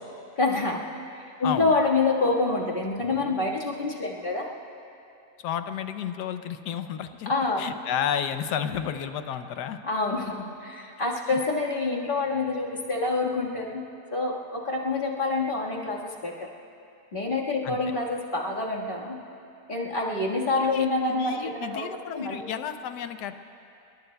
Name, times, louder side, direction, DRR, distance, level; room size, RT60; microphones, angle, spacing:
voice 1, 0.4-0.8 1.4-4.5 7.3-7.7 9.8-16.5 17.1-19.2 19.7-21.9 22.1-22.4, left 3 dB, 30° left, -3 dB, 1.7 m, -27 dB
voice 2, 1.4-1.7 5.4-9.8 17.6-17.8 20.6-23.3, left 8 dB, 90° left, 9 dB, 1.3 m, -32 dB
26.5 x 22.5 x 2.3 m, 2.7 s
omnidirectional pair, 1.7 m